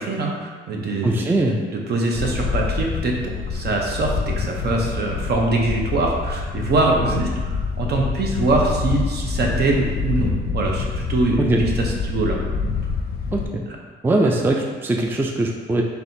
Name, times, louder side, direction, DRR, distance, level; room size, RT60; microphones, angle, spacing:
voice 1, 0.0-1.3 1.7-12.4, right 2 dB, 55° right, 0 dB, 0.8 m, -23 dB
voice 2, 1.0-1.6 11.4-11.6 13.3-13.6 14.0-15.8, right 2 dB, 10° right, 1 dB, 0.3 m, -21 dB
Wind, 2.1-13.5, left 5 dB, 50° left, 0.5 m, -26 dB
4.1 x 3.4 x 2.7 m, 1.5 s
cardioid pair, 90°, 20 cm